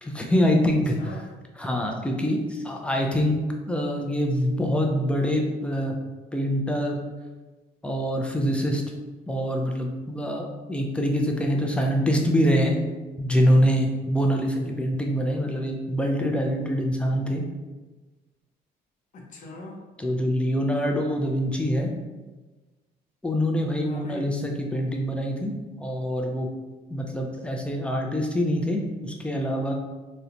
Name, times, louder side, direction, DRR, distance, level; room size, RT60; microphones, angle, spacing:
voice 1, 0.0-0.9 1.6-3.4 3.7-6.0 6.3-7.0 7.8-8.8 9.3-12.7 13.2-17.4 20.0-21.9 23.2-25.5 25.8-26.5 26.9-29.7, equal, 5° left, 1 dB, 0.3 m, -25 dB
voice 2, 0.7-1.3 14.6-14.7 19.1-19.8 23.8-24.4, left 2 dB, 50° left, 1 dB, 0.6 m, -42 dB
2.8 x 2.1 x 2.5 m, 1.2 s
cardioid pair, 110°, 17 cm